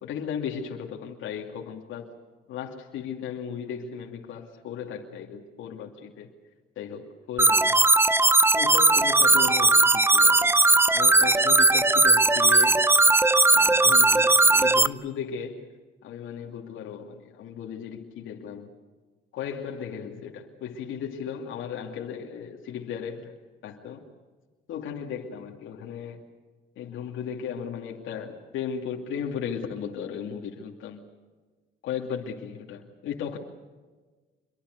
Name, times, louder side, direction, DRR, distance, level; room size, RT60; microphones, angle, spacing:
voice 1, 0.0-2.1 2.5-6.3 6.8-7.9 8.5-10.5 10.9-12.8 13.5-15.7 16.0-18.7 19.3-23.3 23.6-24.1 24.7-26.2 26.8-31.0 31.8-33.4, left 7 dB, 85° left, 0 dB, 2.7 m, -36 dB
sound 1, 7.4-14.9, right 2 dB, 10° right, 0.8 m, -19 dB
26.5 x 23.5 x 6.8 m, 1.4 s
cardioid pair, 90°, 20 cm